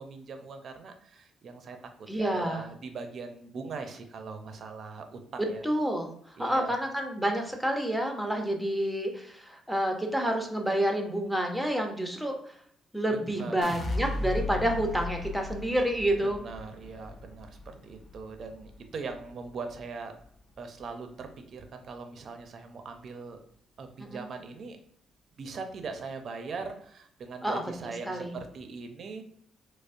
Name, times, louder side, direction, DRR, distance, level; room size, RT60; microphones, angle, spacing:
voice 1, 0.0-5.6 6.4-6.8 13.1-13.6 16.4-20.1 20.6-23.4 23.8-24.8 25.4-29.2, right 4 dB, 55° right, 6 dB, 0.5 m, -41 dB
voice 2, 2.1-2.6 5.6-12.5 12.9-16.4 24.0-24.3 27.4-28.3, right 1 dB, ahead, 3 dB, 0.7 m, -29 dB
sound 1, 13.6-19.8 20.2-20.8, left 3 dB, 45° left, 0.5 m, -37 dB
5.0 x 2.0 x 2.5 m, 0.65 s
cardioid pair, 90°, 0 cm